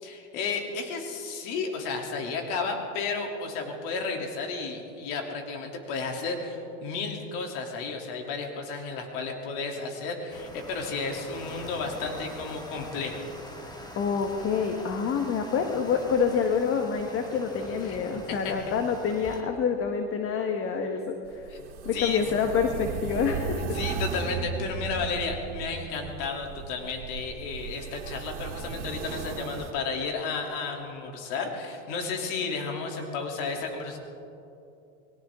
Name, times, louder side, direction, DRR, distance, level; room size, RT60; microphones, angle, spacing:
voice 1, 0.0-13.3 17.8-18.0 18.3-18.5 21.9-22.2 23.7-34.0, left 4 dB, 60° left, 2 dB, 3.0 m, -33 dB
sound 1, 10.3-19.4, left 1 dB, 10° left, 1.9 m, -44 dB
voice 2, 14.0-21.5 21.8-23.8, left 6 dB, 40° left, 5 dB, 1.4 m, -27 dB
sound 2, 21.3-29.7, right 6 dB, 80° right, 2.5 m, -36 dB
21.5 x 18.5 x 3.7 m, 2.7 s
supercardioid pair, 115°, 35 cm